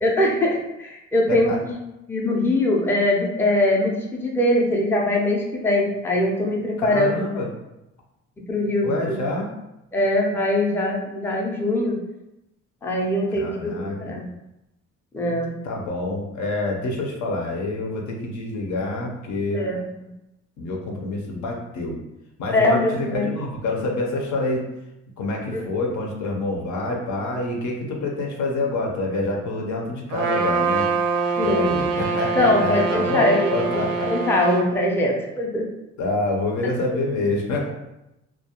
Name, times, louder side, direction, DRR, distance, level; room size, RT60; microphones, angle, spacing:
voice 1, 0.0-1.8 2.1-7.2 8.5-9.2 9.9-11.9 12.8-14.3 15.1-15.5 19.5-19.8 22.5-23.3 25.5-25.6 31.4-31.7 32.4-35.6, left 1 dB, 10° left, -2 dB, 0.4 m, -22 dB
voice 2, 6.8-7.5 8.8-9.5 13.3-14.2 15.6-19.7 20.6-22.0 22.4-24.7 25.2-30.9 31.3-34.1 36.0-37.7, left 2 dB, 70° left, 0 dB, 0.6 m, -27 dB
Trumpet, 30.1-34.7, right 4 dB, 75° right, 0.5 m, -24 dB
2.3 x 2.1 x 2.8 m, 0.91 s
cardioid pair, 90°, 30 cm